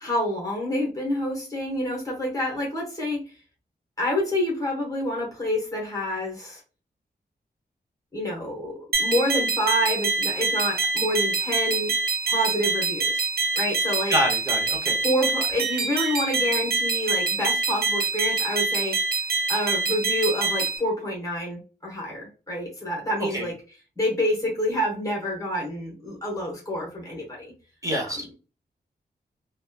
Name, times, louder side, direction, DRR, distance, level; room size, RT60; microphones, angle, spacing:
voice 1, 0.0-3.2 4.0-6.6 8.1-11.9 12.3-13.3 13.6-14.1 15.0-19.0 19.5-23.5 24.0-27.5 28.0-28.1, left 1 dB, 20° left, -3 dB, 1.0 m, -28 dB
sound 1, 8.9-20.8, right 4 dB, 65° right, 0.6 m, -25 dB
voice 2, 14.1-15.0 23.2-23.5 27.8-28.3, equal, 20° right, 0 dB, 0.7 m, -27 dB
3.0 x 2.1 x 2.2 m, 0.34 s
wide cardioid pair, 170°, 17 cm